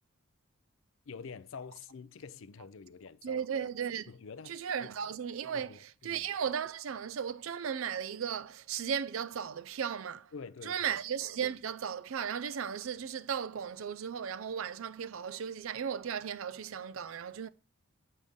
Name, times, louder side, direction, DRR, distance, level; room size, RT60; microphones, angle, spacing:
voice 1, 1.1-3.5 4.1-4.9 5.5-6.2 10.3-11.0, left 5 dB, 70° left, 0.5 m, -47 dB
voice 2, 3.2-4.1 4.5-10.3 10.6-17.5, right 7 dB, 75° right, 0.4 m, -36 dB
7.7 x 5.5 x 3.6 m
head